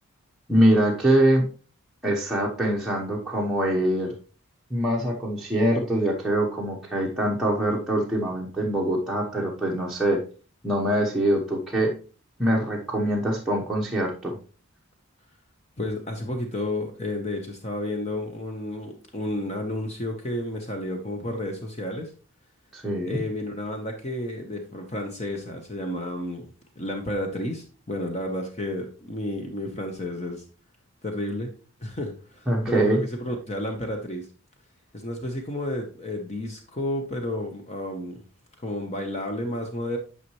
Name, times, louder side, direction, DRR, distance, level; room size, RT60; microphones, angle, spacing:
voice 1, 0.5-1.5 2.0-4.1 4.7-10.2 10.6-11.9 12.4-14.4 22.7-23.2 32.5-33.0, right 1 dB, ahead, -4 dB, 1.0 m, -23 dB
voice 2, 15.8-22.1 23.0-30.4 31.0-31.5 31.8-34.3 34.9-38.2 38.6-40.0, left 1 dB, 30° left, 3 dB, 0.9 m, -31 dB
9.1 x 5.6 x 3.1 m, 0.37 s
head